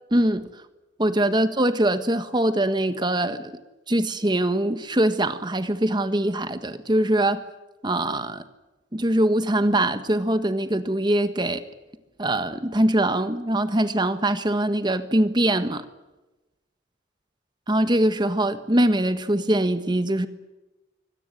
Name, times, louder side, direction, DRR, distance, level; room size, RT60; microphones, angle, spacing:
voice 1, 0.1-0.5 1.0-3.5 3.9-7.4 7.8-8.4 8.9-11.6 12.2-15.8 17.7-20.3, right 1 dB, 25° right, 10 dB, 1.4 m, -22 dB
24.0 x 17.5 x 9.6 m, 1.0 s
head